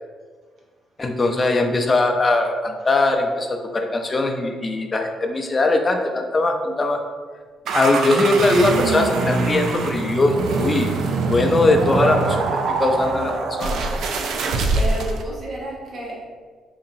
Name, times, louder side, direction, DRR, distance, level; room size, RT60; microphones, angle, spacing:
voice 1, 1.0-7.0 7.7-10.9 11.2-13.8, left 2 dB, 30° left, 3 dB, 0.4 m, -20 dB
sound 1, 7.7-15.2, right 3 dB, 75° right, 0.3 m, -23 dB
voice 2, 14.7-16.2, equal, 55° right, -4 dB, 0.9 m, -31 dB
3.8 x 2.9 x 2.5 m, 1.6 s
cardioid pair, 90°, 0 cm